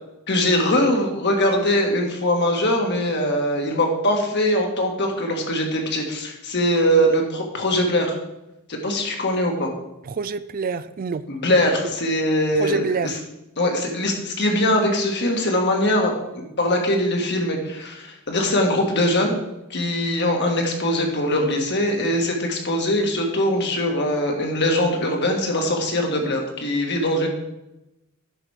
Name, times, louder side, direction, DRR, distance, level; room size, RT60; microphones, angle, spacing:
voice 1, 0.3-8.2 8.7-9.7 11.4-12.8 13.6-19.4 19.7-27.3, left 1 dB, 55° left, 2 dB, 1.7 m, -22 dB
voice 2, 10.0-11.2 12.6-13.1, right 4 dB, 45° right, 15 dB, 0.4 m, -26 dB
9.9 x 6.2 x 4.9 m, 0.93 s
head